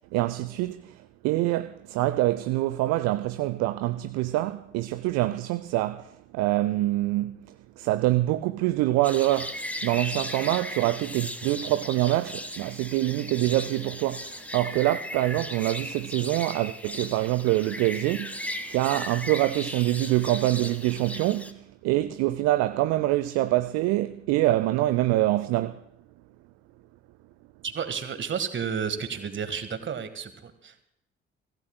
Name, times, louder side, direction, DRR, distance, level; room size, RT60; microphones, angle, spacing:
voice 1, 0.0-25.8, right 16 dB, 60° right, 0.5 m, -25 dB
sound 1, 9.0-21.5, left 1 dB, 5° left, 1.4 m, -37 dB
voice 2, 27.6-30.8, right 7 dB, 40° right, 1.5 m, -32 dB
24.0 x 16.0 x 2.2 m
figure-of-eight pair, 40°, 30 cm